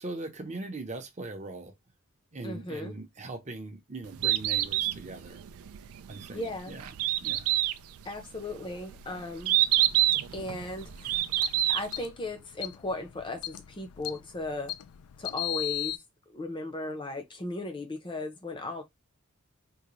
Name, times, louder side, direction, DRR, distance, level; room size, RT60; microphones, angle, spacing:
voice 1, 0.0-1.7 2.3-5.4 6.1-6.9 7.2-7.5, right 2 dB, 30° right, 0.7 m, -40 dB
voice 2, 2.4-3.0 6.3-6.8 8.0-9.5 10.3-11.2 11.7-14.7 15.2-16.0 16.3-18.8, left 2 dB, 20° left, 0.6 m, -36 dB
Bird, 4.0-12.0, right 14 dB, 70° right, 0.3 m, -28 dB
sound 1, 9.4-16.0, left 14 dB, 85° left, 0.4 m, -39 dB
3.7 x 2.1 x 3.0 m
head